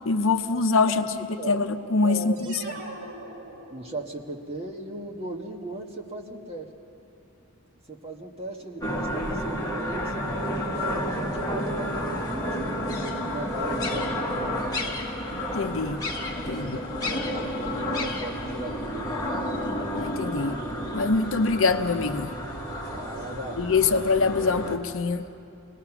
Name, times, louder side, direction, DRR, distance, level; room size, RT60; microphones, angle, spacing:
voice 1, 0.1-2.6 15.5-16.0 16.5-16.8 19.9-20.6 20.9-22.3 23.6-25.3, left 4 dB, 60° left, 8 dB, 0.7 m, -24 dB
voice 2, 0.7-1.1 1.4-1.6 2.0-2.8 3.7-6.7 7.9-10.1 10.7-15.1 16.5-19.5 22.9-23.7, right 1 dB, 25° right, 1 dB, 1.5 m, -38 dB
sound 1, 2.4-4.2, right 1 dB, 90° right, 2.0 m, -42 dB
sound 2, 8.8-24.8, equal, 15° left, 1.7 m, -31 dB
26.0 x 19.0 x 6.0 m, 2.7 s
head